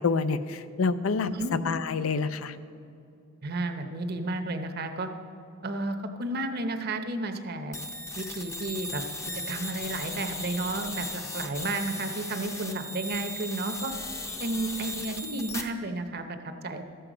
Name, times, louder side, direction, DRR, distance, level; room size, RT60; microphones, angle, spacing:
voice 1, 0.0-2.5, left 4 dB, 85° left, 12 dB, 0.5 m, -27 dB
voice 2, 1.2-1.5 3.4-5.1 5.6-7.8 8.2-9.0 9.5-13.9 14.4-16.8, right 2 dB, 50° right, 7 dB, 0.8 m, -32 dB
sound 1, 7.7-15.6, left 2 dB, 15° left, 0.6 m, -37 dB
13.0 x 7.9 x 5.0 m, 2.6 s
head